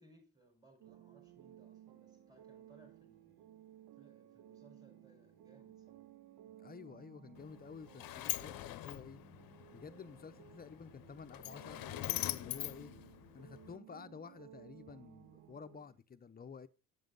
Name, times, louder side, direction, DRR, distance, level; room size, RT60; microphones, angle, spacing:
voice 1, 0.0-6.1, right 2 dB, 10° right, 4.6 m, -66 dB
sound 1, 0.8-15.8, right 13 dB, 90° right, 0.5 m, -59 dB
sound 2, 1.2-16.0, right 4 dB, 35° right, 1.6 m, -69 dB
voice 2, 6.5-9.2 9.7-12.9 13.3-16.7, left 6 dB, 25° left, 0.7 m, -52 dB
Sliding door, 7.4-13.8, left 15 dB, 80° left, 0.7 m, -43 dB
8.2 x 7.4 x 3.8 m
cardioid pair, 105°, 34 cm